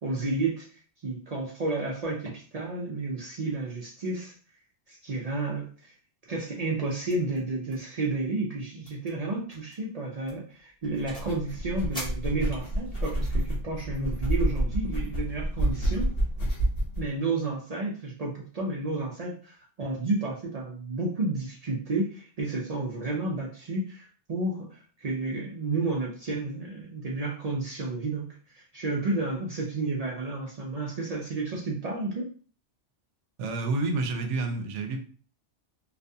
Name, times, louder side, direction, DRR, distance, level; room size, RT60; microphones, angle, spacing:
voice 1, 0.0-0.7 1.0-4.3 4.9-5.9 6.3-16.1 17.0-32.2, right 2 dB, 65° right, -3 dB, 0.4 m, -31 dB
sound 1, 7.1-7.4 7.7-8.0 8.2-8.3 8.8-9.1 9.5-9.8 10.3-11.4 11.9-12.9, equal, 5° left, 0.8 m, -43 dB
sound 2, 10.9-17.0, right 1 dB, 60° left, 1.0 m, -29 dB
voice 2, 33.4-35.1, right 3 dB, 80° right, 5 dB, 0.9 m, -29 dB
2.4 x 2.2 x 2.6 m, 0.41 s
omnidirectional pair, 1.2 m